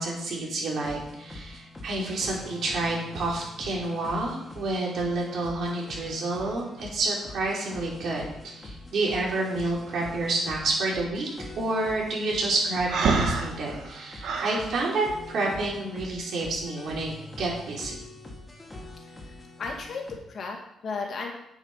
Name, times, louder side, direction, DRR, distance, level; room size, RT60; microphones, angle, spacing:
voice 1, 0.0-11.3 11.6-18.0, right 2 dB, 70° right, -3 dB, 3.6 m, -29 dB
sound 1, 0.7-20.1, left 2 dB, 20° left, 2.1 m, -44 dB
Breathing, 12.9-14.6, right 4 dB, 85° right, 1.5 m, -26 dB
voice 2, 19.6-21.3, left 4 dB, 55° left, 1 dB, 2.2 m, -34 dB
8.6 x 6.2 x 5.7 m, 0.79 s
cardioid pair, 100°, 0 cm